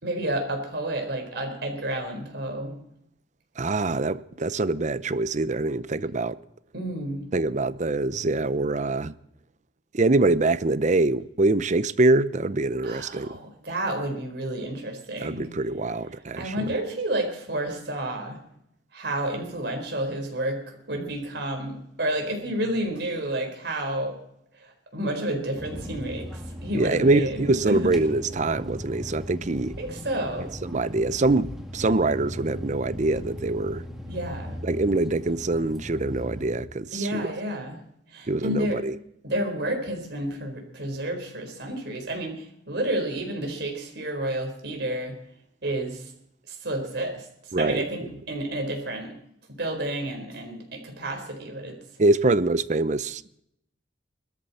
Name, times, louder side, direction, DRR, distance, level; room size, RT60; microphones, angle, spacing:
voice 1, 0.0-2.8 6.7-7.3 12.8-15.5 16.4-18.4 18.9-24.2 24.6-27.9 29.8-30.5 34.1-34.6 36.9-37.8 38.1-38.8 39.2-45.2 45.6-46.1 46.5-47.3 47.6-49.2 49.5-51.8, right 1 dB, 60° right, 4.4 m, -30 dB
voice 2, 3.6-6.4 7.3-9.1 9.9-13.4 15.2-16.7 26.7-29.8 30.6-33.8 34.6-37.3 38.3-39.0 47.5-47.8 52.0-53.4, right 2 dB, 40° right, 0.7 m, -24 dB
sound 1, 25.6-36.6, equal, ahead, 2.2 m, -38 dB
21.0 x 13.5 x 4.3 m
head